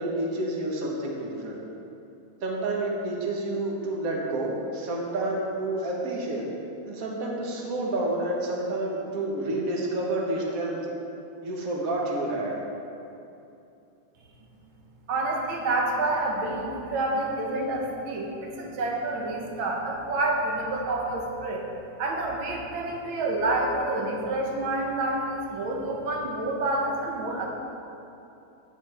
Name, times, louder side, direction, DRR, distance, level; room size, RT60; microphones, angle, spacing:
voice 1, 0.0-1.6 2.4-6.5 6.9-10.8 11.4-12.6, right 2 dB, 50° right, -2 dB, 1.6 m, -29 dB
voice 2, 15.1-21.6 22.0-27.5, right 2 dB, 85° right, 0 dB, 1.8 m, -28 dB
16.0 x 5.8 x 3.4 m, 2.8 s
omnidirectional pair, 2.2 m